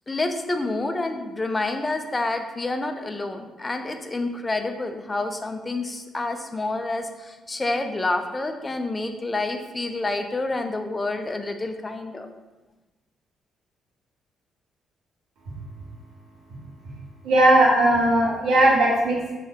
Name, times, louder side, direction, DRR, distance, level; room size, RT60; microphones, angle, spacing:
voice 1, 0.1-12.3, left 2 dB, 20° left, 6 dB, 0.3 m, -28 dB
voice 2, 17.2-19.3, right 1 dB, 80° right, -3 dB, 0.8 m, -18 dB
2.7 x 2.3 x 3.3 m, 1.1 s
cardioid pair, 90°, 0 cm